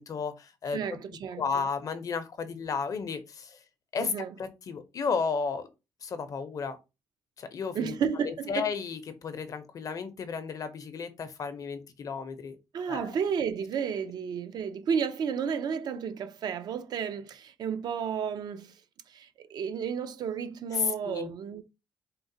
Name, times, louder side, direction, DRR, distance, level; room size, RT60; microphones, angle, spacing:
voice 1, 0.0-0.8 1.4-3.6 3.9-4.1 4.4-5.7 6.0-6.8 7.4-7.9 8.2-12.6 12.9-13.1 20.7-21.3, left 5 dB, 45° left, 0.5 m, -33 dB
voice 2, 0.7-1.6 4.0-4.3 7.8-8.7 12.7-18.7 19.1-21.6, right 7 dB, 60° right, 0.4 m, -32 dB
3.7 x 2.0 x 2.6 m
cardioid pair, 110°, 8 cm